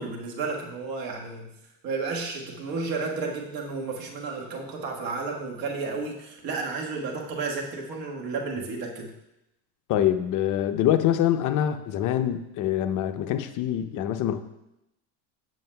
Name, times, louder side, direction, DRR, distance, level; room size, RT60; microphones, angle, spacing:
voice 1, 0.0-1.5 1.8-9.1, right 4 dB, 50° right, 0 dB, 1.5 m, -32 dB
voice 2, 9.9-14.4, left 11 dB, 45° left, 9 dB, 0.6 m, -25 dB
7.6 x 7.5 x 2.2 m, 0.87 s
supercardioid pair, 110°, 44 cm